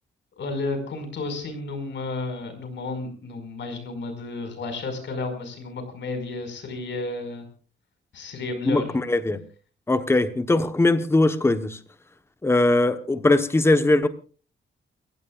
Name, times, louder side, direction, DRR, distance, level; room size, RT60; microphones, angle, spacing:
voice 1, 0.4-7.5 8.1-8.8, left 3 dB, 65° left, 6 dB, 5.3 m, -32 dB
voice 2, 8.7-9.4 9.9-11.8 12.4-14.1, left 2 dB, 10° left, 10 dB, 1.0 m, -20 dB
29.5 x 16.0 x 2.4 m, 0.37 s
wide cardioid pair, 160°, 20 cm